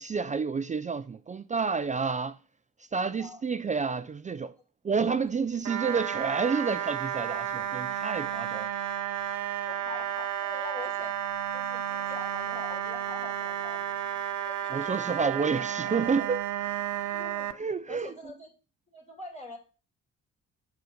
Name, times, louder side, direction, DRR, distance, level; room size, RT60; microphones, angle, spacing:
voice 1, 0.0-2.4 2.8-4.5 4.8-8.7 14.7-16.5 17.6-18.1, right 5 dB, 25° right, 0.4 m, -29 dB
voice 2, 4.9-5.3 9.7-11.2 11.5-13.9 14.4-14.9 15.2-15.4 17.1-17.6 17.9-18.5 18.9-19.6, left 2 dB, 25° left, 2.5 m, -44 dB
sound 1, 5.6-17.5, right 10 dB, 75° right, 0.9 m, -32 dB
7.7 x 7.0 x 5.2 m
cardioid pair, 90°, 30 cm